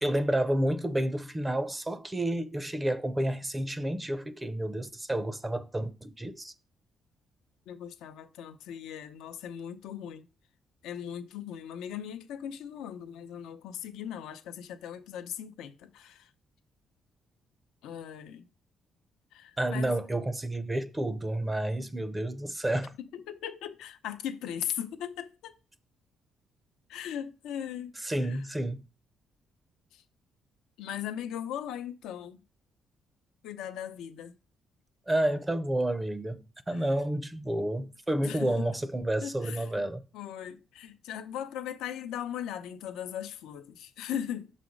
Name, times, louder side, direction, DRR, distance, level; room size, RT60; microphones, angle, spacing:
voice 1, 0.0-6.5 19.6-22.9 28.0-28.8 35.1-40.0, right 1 dB, 15° right, 0.5 m, -30 dB
voice 2, 7.7-10.3 10.8-16.3 17.8-18.5 19.3-19.9 23.1-25.5 26.9-27.9 28.2-28.4 29.9-30.0 30.8-32.4 33.4-34.3 36.7-36.9 38.2-38.7 39.2-39.9 40.1-44.5, left 9 dB, 90° left, 0.6 m, -38 dB
6.1 x 4.2 x 5.1 m
cardioid pair, 90°, 0 cm